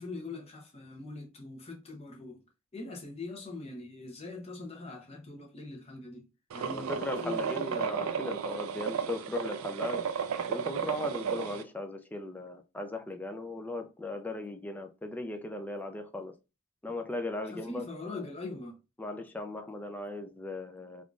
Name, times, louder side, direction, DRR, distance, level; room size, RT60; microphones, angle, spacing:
voice 1, 0.0-2.4 2.7-6.3 6.5-7.7 17.4-18.8, left 3 dB, 30° left, 0.7 m, -42 dB
sound 1, 6.5-11.6, right 7 dB, 90° right, 0.4 m, -34 dB
voice 2, 6.7-10.1 10.5-16.4 16.8-17.8 19.0-21.0, left 2 dB, 10° left, 0.4 m, -37 dB
3.5 x 2.4 x 2.3 m
head